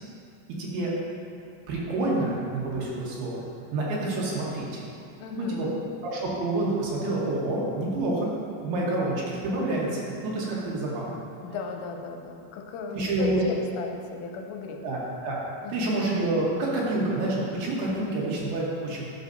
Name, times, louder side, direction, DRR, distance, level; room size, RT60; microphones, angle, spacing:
voice 1, 0.6-0.9 1.7-3.4 3.7-4.8 5.4-5.7 6.0-8.3 8.6-11.2 12.9-13.4 14.8-15.0 15.2-15.4 15.7-19.1, right 2 dB, 70° right, -5 dB, 2.9 m, -28 dB
voice 2, 5.2-5.8 10.4-10.5 11.4-14.9 15.6-15.8, left 5 dB, 85° left, 3 dB, 2.8 m, -36 dB
10.5 x 6.3 x 2.6 m, 2.5 s
omnidirectional pair, 5.0 m